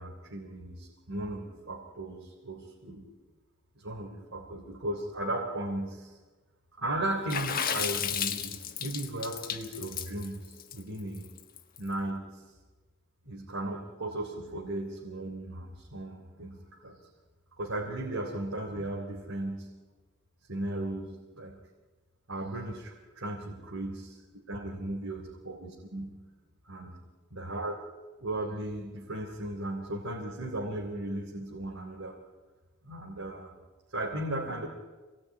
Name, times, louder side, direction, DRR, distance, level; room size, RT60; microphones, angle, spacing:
voice 1, 0.0-3.1 3.8-6.2 6.8-11.3 11.8-12.5 13.2-17.0 17.6-19.7 20.5-21.6 22.3-26.2 26.6-26.9 27.3-27.7 28.2-32.1 32.8-33.5 33.9-34.7, right 1 dB, 85° right, 0 dB, 3.4 m, -36 dB
Water / Splash splatter, 7.3-11.8, left 8 dB, 45° left, 1.6 m, -33 dB
26.5 x 19.5 x 9.8 m, 1.3 s
head